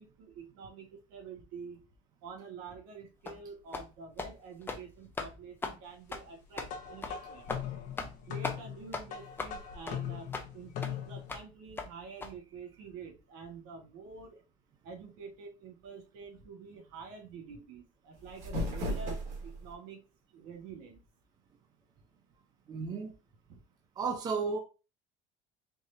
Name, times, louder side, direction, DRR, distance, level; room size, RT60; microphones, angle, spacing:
voice 1, 0.0-1.8 2.2-7.5 8.0-10.3 10.5-14.4 14.8-20.0 20.3-21.0 23.5-23.6, right 5 dB, 80° right, 1.7 m, -48 dB
sound 1, 3.3-3.4 3.7-3.9 4.2-4.3 4.6-4.8 5.2-5.3 5.6-5.8 6.1-6.2 6.6-6.7 7.0-7.2 7.5-7.6 8.0-8.2 8.4-8.6 8.9-9.0 9.4-9.5 9.9-10.0 10.3-10.5 10.8-10.9 11.3-11.4 11.8-11.9 12.2-12.3, left 3 dB, 15° left, 0.7 m, -37 dB
sound 2, 6.6-11.4, left 9 dB, 65° left, 1.1 m, -40 dB
sound 3, 18.1-19.7, equal, 50° right, 2.0 m, -35 dB
voice 2, 22.7-23.1 24.0-24.6, right 5 dB, 30° right, 0.8 m, -33 dB
4.7 x 3.8 x 2.7 m
cardioid pair, 145°, 15 cm